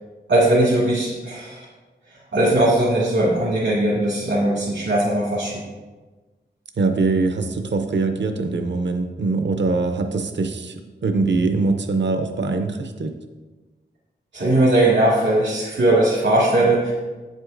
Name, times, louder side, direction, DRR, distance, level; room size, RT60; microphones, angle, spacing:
voice 1, 0.3-1.6 2.3-5.6 14.3-16.9, right 1 dB, 90° right, -8 dB, 1.9 m, -19 dB
voice 2, 6.8-10.7 11.0-13.1, right 3 dB, 70° right, 6 dB, 0.6 m, -22 dB
8.1 x 7.9 x 2.5 m, 1.3 s
wide cardioid pair, 75°, 19 cm